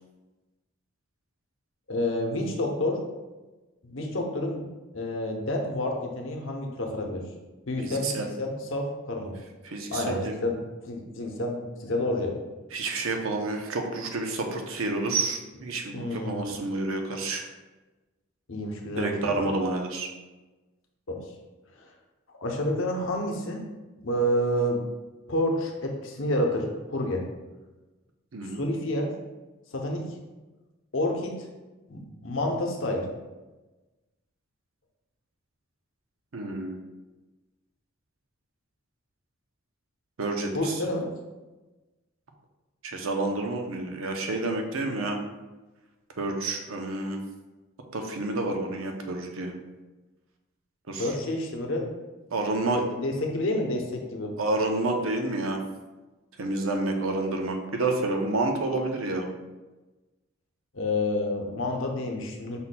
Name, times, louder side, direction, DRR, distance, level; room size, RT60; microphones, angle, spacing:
voice 1, 1.9-3.0 3.8-4.6 4.9-7.3 7.7-9.3 9.9-10.6 10.8-12.3 15.9-16.4 18.5-19.5 21.1-21.2 21.8-21.9 22.4-23.6 24.0-24.8 25.3-27.2 28.5-29.1 29.7-30.0 30.9-31.3 31.9-33.1 40.5-41.1 51.0-51.9 52.7-54.3 60.7-62.6, left 1 dB, 65° left, 1 dB, 0.7 m, -29 dB
voice 2, 7.8-8.3 9.6-10.4 12.7-17.4 19.0-20.1 28.3-28.6 36.3-36.8 40.2-40.7 42.8-45.2 46.2-47.2 47.9-49.5 50.9-51.1 52.3-52.8 54.4-55.6 56.4-59.3, right 2 dB, 75° right, 3 dB, 0.6 m, -29 dB
5.5 x 4.1 x 2.2 m, 1.2 s
head